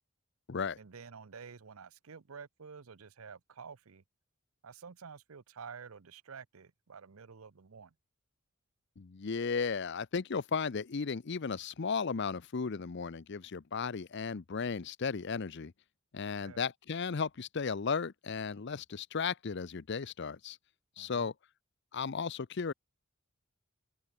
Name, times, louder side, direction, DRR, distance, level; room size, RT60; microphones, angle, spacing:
voice 1, 0.8-4.0 4.6-7.9 16.3-16.7 21.0-21.3, right 5 dB, 85° right, 0.7 m, -50 dB
voice 2, 9.0-15.7 16.1-20.6 21.0-21.3 21.9-22.7, left 5 dB, 55° left, 0.6 m, -35 dB
open air
head